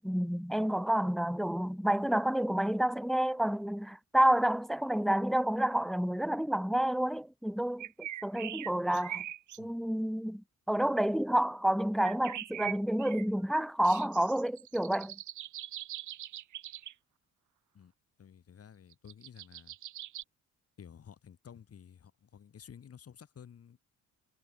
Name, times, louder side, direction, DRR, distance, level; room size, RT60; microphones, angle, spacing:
voice 1, 0.0-9.2 9.6-10.4 10.7-15.2, right 1 dB, ahead, 0.6 m, -29 dB
sound 1, 7.8-9.6 12.0-16.9 18.9-20.2, right 13 dB, 75° right, 2.1 m, -42 dB
voice 2, 18.2-19.8 20.8-23.8, left 8 dB, 50° left, 4.7 m, -53 dB
cardioid pair, 90°, 30 cm